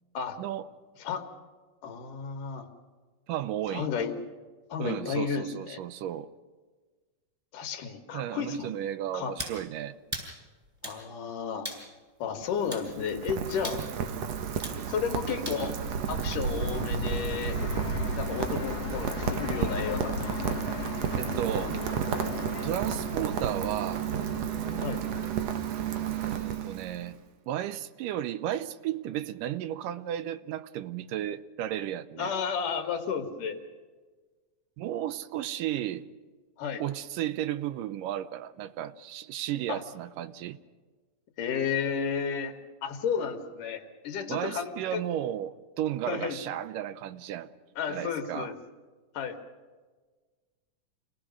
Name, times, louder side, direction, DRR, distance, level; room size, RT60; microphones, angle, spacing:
voice 1, 1.8-2.7 3.7-4.2 4.7-5.8 7.5-8.7 9.1-9.4 10.8-11.7 12.2-13.8 14.9-15.8 16.1-17.6 18.2-20.2 24.8-25.0 32.2-33.6 36.6-36.8 39.7-39.8 41.4-42.5 42.8-45.0 46.1-46.4 47.8-48.6 49.1-49.4, left 6 dB, 75° left, 3.3 m, -32 dB
voice 2, 3.3-3.9 4.8-6.3 8.1-9.9 21.2-21.8 22.6-24.1 26.1-27.2 27.5-32.3 34.8-36.0 36.8-40.6 44.3-47.5 47.9-48.5, right 11 dB, 85° right, 2.4 m, -34 dB
sound 1, 9.4-9.6 10.1-10.3 10.8-11.0 11.6-11.9 12.7-12.9 13.6-13.8 14.6-14.8 15.5-15.6, equal, 10° right, 6.3 m, -37 dB
Rain, 12.3-27.1, right 8 dB, 60° right, 2.1 m, -32 dB
Fixed-wing aircraft airplane, 16.6-25.3, left 7 dB, 45° left, 2.6 m, -38 dB
27.5 x 18.5 x 6.4 m
omnidirectional pair, 3.8 m